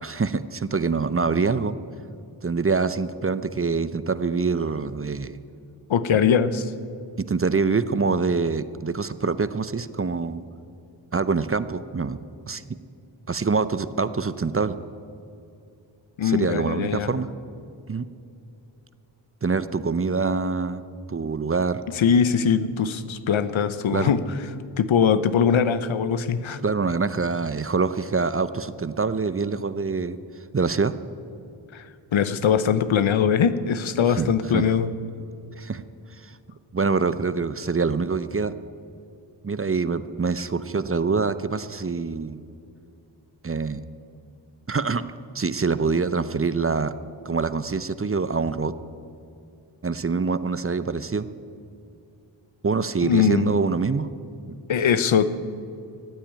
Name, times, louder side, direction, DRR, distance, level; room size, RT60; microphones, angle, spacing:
voice 1, 0.0-1.7 2.4-5.4 7.2-10.4 11.1-12.2 12.5-12.6 13.3-14.8 16.2-17.3 17.9-18.1 19.4-20.8 21.1-21.8 23.9-24.1 26.6-30.2 30.5-30.9 34.1-34.3 34.5-34.6 35.6-35.8 36.2-36.3 36.7-38.5 39.4-42.4 43.4-43.8 44.7-45.1 45.3-46.9 47.2-48.7 49.8-51.3 52.6-54.1, right 4 dB, 30° right, 14 dB, 0.7 m, -25 dB
voice 2, 5.9-6.7 16.2-17.1 21.9-24.2 24.8-26.6 31.7-34.9 53.0-53.6 54.7-55.3, left 7 dB, 75° left, 13 dB, 0.9 m, -21 dB
15.0 x 8.8 x 8.9 m, 2.6 s
cardioid pair, 45°, 48 cm